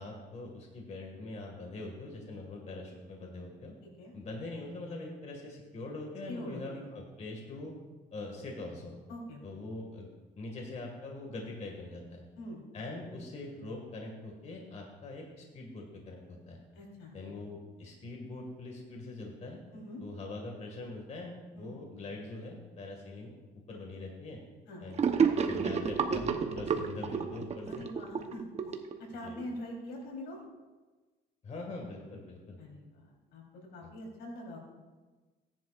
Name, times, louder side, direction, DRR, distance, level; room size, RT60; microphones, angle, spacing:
voice 1, 0.0-3.7 4.1-7.7 8.1-9.0 9.4-10.1 10.4-12.2 12.7-16.6 17.1-19.6 20.0-23.3 23.7-24.4 24.8-25.0 25.3-27.8 29.2-29.4 31.4-32.6 33.8-33.9, left 2 dB, 40° left, 1 dB, 2.0 m, -43 dB
voice 2, 6.3-6.9 9.1-9.4 12.4-12.6 16.7-17.1 19.7-20.0 21.6-21.7 24.7-24.8 27.6-28.4 29.1-30.4 32.6-34.6, left 1 dB, 85° left, -2 dB, 3.8 m, -43 dB
Gurgling / Sink (filling or washing), 25.0-29.5, right 6 dB, 40° right, 1.0 m, -30 dB
17.0 x 10.5 x 2.5 m, 1.3 s
cardioid pair, 110°, 17 cm